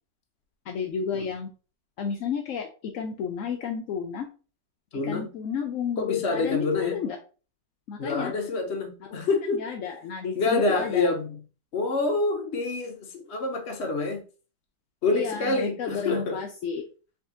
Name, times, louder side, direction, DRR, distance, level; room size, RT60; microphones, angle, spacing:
voice 1, 0.7-1.5 2.0-4.3 5.0-7.2 7.9-8.3 9.0-9.2 9.5-11.1 15.1-16.8, left 6 dB, 70° left, 0.8 m, -31 dB
voice 2, 4.9-5.3 6.0-7.0 8.0-9.6 10.3-11.3 11.7-14.2 15.0-16.4, left 3 dB, 45° left, 1.0 m, -27 dB
3.6 x 3.2 x 3.8 m
omnidirectional pair, 1.9 m